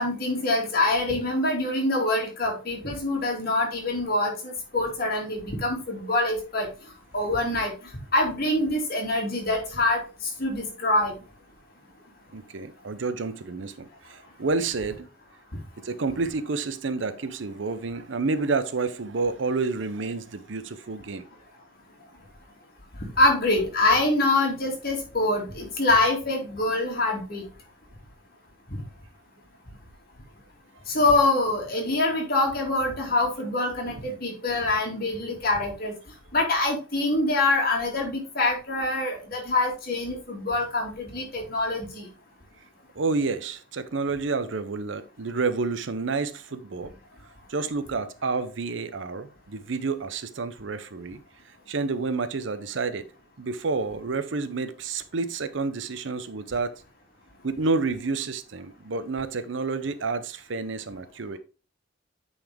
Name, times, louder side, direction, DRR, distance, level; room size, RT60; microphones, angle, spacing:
voice 1, 0.0-6.7 7.1-7.7 8.1-10.0 10.4-11.1 23.0-27.4 30.9-35.9 36.3-42.1, left 2 dB, 50° left, 2.3 m, -25 dB
voice 2, 12.3-15.1 15.8-21.2 43.0-46.9 47.5-51.2 51.7-53.1 53.4-56.8 57.4-61.4, right 4 dB, 70° right, 0.6 m, -29 dB
8.9 x 4.1 x 3.5 m
head